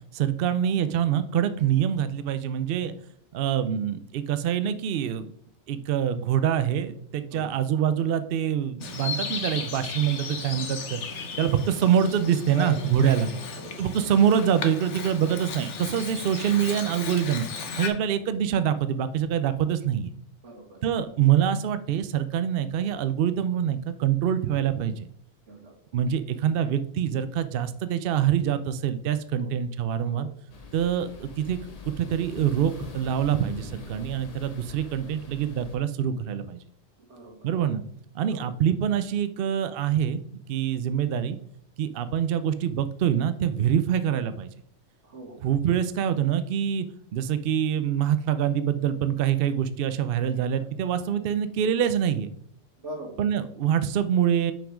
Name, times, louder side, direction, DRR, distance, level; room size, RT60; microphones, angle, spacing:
voice 1, 0.1-2.9 3.3-5.3 5.7-13.3 13.8-17.5 17.8-20.1 20.8-25.1 25.9-30.3 30.7-31.6 31.9-36.6 37.4-37.8 38.1-40.2 40.5-41.4 41.8-44.5 45.4-46.9 47.1-52.3 53.2-54.5, right 9 dB, 60° right, 12 dB, 0.7 m, -25 dB
Bird vocalization bird call bird song, 8.8-17.9, left 5 dB, 80° left, 1.2 m, -35 dB
voice 2, 13.0-13.8 15.2-15.4 16.1-16.3 20.4-20.9 25.5-25.7 29.4-29.5 30.0-30.3 37.1-37.5 38.3-38.5 45.0-45.4 50.3-50.7 52.8-53.2, right 1 dB, 85° right, 0 dB, 2.1 m, -41 dB
sound 1, 30.5-35.8, left 3 dB, 35° left, 0.9 m, -43 dB
5.9 x 5.3 x 4.9 m, 0.66 s
omnidirectional pair, 1.2 m